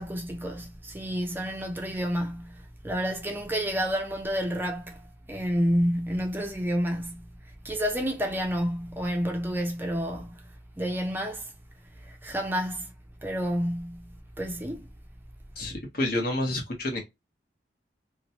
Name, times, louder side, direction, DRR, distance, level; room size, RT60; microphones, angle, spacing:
voice 1, 0.0-7.3 7.6-10.5 10.8-11.5 12.0-12.9 13.2-14.9, equal, 10° right, 0.5 m, -30 dB
voice 2, 15.6-17.0, left 1 dB, 55° left, 1.1 m, -29 dB
3.0 x 2.1 x 2.7 m
head